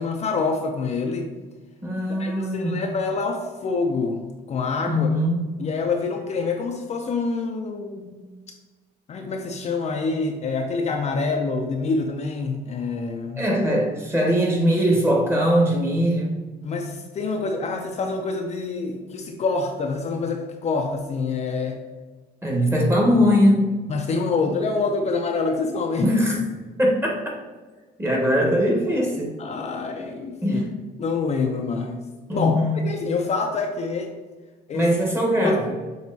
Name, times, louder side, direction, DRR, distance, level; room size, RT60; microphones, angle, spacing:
voice 1, 0.0-1.3 2.2-5.1 5.6-8.3 9.1-13.4 16.6-21.8 23.9-26.1 29.4-30.6 31.0-32.0 32.3-32.6 32.8-34.1 34.7-34.9 35.4-35.6, left 4 dB, 40° left, 2 dB, 0.5 m, -26 dB
voice 2, 1.8-2.8 4.9-5.4 13.4-16.4 22.4-23.7 26.0-26.4 26.8-27.1 28.0-29.4 30.4-30.8 32.3-32.9 34.7-35.7, equal, 15° right, -1 dB, 1.2 m, -21 dB
6.2 x 3.0 x 2.7 m, 1.3 s
cardioid pair, 110°, 17 cm